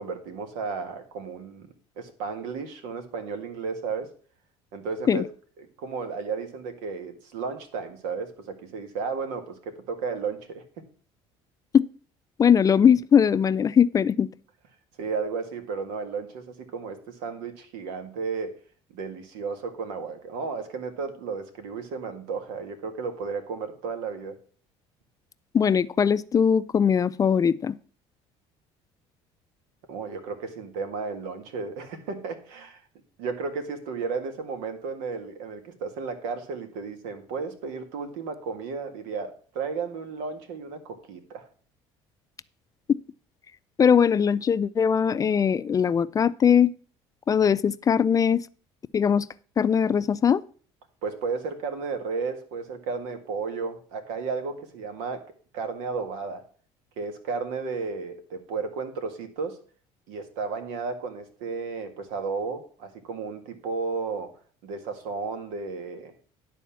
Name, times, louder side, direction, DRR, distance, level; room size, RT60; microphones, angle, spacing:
voice 1, 0.0-4.1 4.7-5.2 5.6-10.9 15.0-18.6 18.9-24.4 29.9-32.8 33.2-41.5 51.0-55.2 55.5-56.4 57.0-59.6 60.1-64.3 64.6-66.1, right 5 dB, 85° right, 7 dB, 1.8 m, -33 dB
voice 2, 12.4-14.3 25.5-27.8 43.8-46.7 47.3-48.4 48.9-49.3 49.6-50.4, left 7 dB, 30° left, 16 dB, 0.4 m, -20 dB
11.0 x 4.2 x 7.1 m, 0.43 s
supercardioid pair, 105°, 12 cm